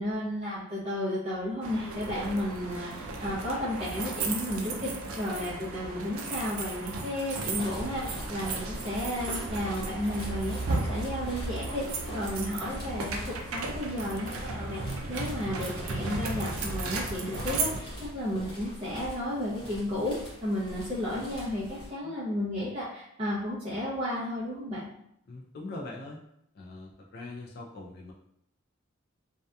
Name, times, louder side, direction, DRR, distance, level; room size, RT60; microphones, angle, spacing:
voice 1, 0.0-20.2 20.4-24.8, left 1 dB, 25° right, -9 dB, 0.5 m, -33 dB
sound 1, 1.6-17.8, right 3 dB, 90° right, 0.4 m, -35 dB
sound 2, 7.3-21.9, equal, 25° left, 0.8 m, -42 dB
voice 2, 25.3-26.2 26.5-28.1, left 2 dB, 50° left, -2 dB, 0.3 m, -42 dB
2.6 x 2.2 x 2.2 m, 0.75 s
head